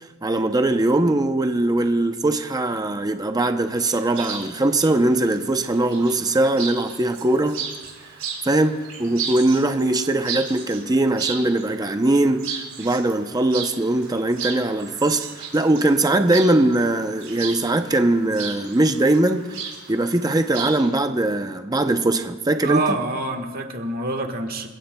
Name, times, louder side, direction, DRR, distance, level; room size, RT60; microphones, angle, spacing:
voice 1, 0.2-7.6 8.4-19.5 19.9-23.0, right 2 dB, 20° right, 7 dB, 0.6 m, -21 dB
Chirp tweet, 3.7-20.9, right 7 dB, 75° right, 4.6 m, -35 dB
voice 2, 22.6-24.7, right 2 dB, 45° right, 4 dB, 1.4 m, -26 dB
29.0 x 15.5 x 2.2 m, 1.3 s
head